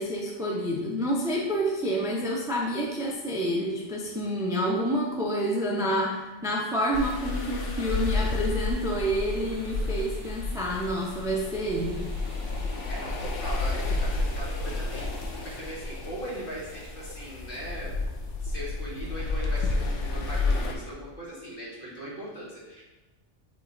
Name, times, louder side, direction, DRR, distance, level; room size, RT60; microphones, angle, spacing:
voice 1, 0.0-12.0, equal, 5° right, -2 dB, 0.5 m, -28 dB
sound 1, 6.9-20.7, left 3 dB, 85° left, 1.1 m, -31 dB
sound 2, 7.3-15.7, right 1 dB, 80° right, 1.8 m, -49 dB
voice 2, 12.9-17.9 18.4-22.8, right 1 dB, 50° left, -6 dB, 1.9 m, -39 dB
7.6 x 3.1 x 4.0 m, 1.1 s
omnidirectional pair, 1.2 m